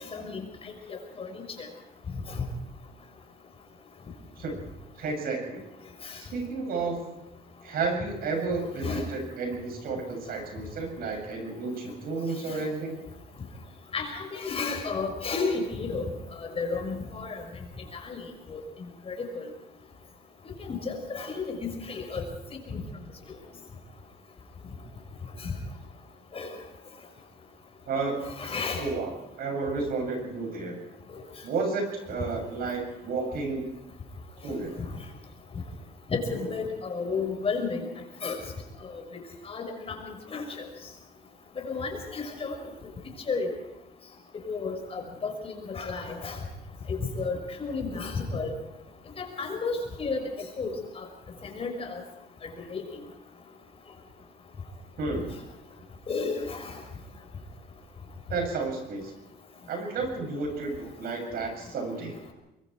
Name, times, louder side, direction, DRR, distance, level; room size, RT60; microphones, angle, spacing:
voice 1, 0.1-1.7 2.3-2.4 6.0-6.2 8.8-9.0 12.5-12.6 13.9-16.0 16.4-17.4 17.9-18.2 18.5-18.6 19.1-19.5 20.6-22.2 22.5-22.8 25.4-25.6 26.3-26.6 28.4-28.9 36.1-37.8 38.2-38.4 38.9-40.6 41.6-42.5 43.3-43.5 44.4-46.4 46.9-48.5 49.2-50.2 50.6-51.1 51.4-52.0 52.7-52.8 56.1-56.7, left 4 dB, 35° left, 3 dB, 5.6 m, -32 dB
voice 2, 5.0-5.6 6.2-7.2 7.6-13.0 27.9-28.2 28.8-30.8 31.4-33.6 34.4-34.7 55.0-55.3 58.3-59.1 59.7-62.2, right 3 dB, 65° right, 3 dB, 7.8 m, -32 dB
23.5 x 23.0 x 4.8 m, 0.94 s
cardioid pair, 110°, 17 cm